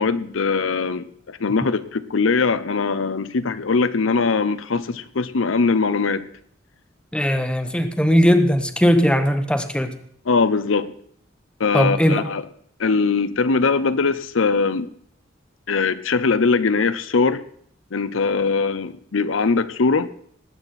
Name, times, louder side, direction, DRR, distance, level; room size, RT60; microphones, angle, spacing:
voice 1, 0.0-6.3 10.3-10.9 11.6-12.5 12.8-14.9 15.7-17.4 17.9-20.1, left 4 dB, 85° left, 0.6 m, -21 dB
voice 2, 7.1-10.0 11.7-12.2, equal, 5° left, 0.9 m, -18 dB
19.0 x 8.1 x 4.2 m
head